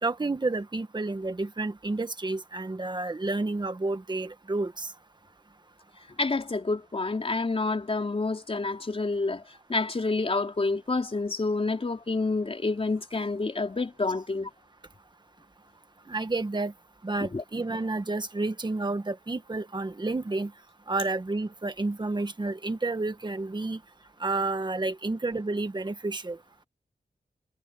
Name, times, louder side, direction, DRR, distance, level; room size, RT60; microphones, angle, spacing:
voice 1, 0.0-4.9 16.1-16.7 17.0-20.5 20.9-23.8 24.2-26.4, right 2 dB, 25° right, 1.5 m, -30 dB
voice 2, 6.2-9.4 9.7-14.5 17.2-17.4, left 3 dB, 35° left, 4.3 m, -28 dB
wide cardioid pair, 125°, 16 cm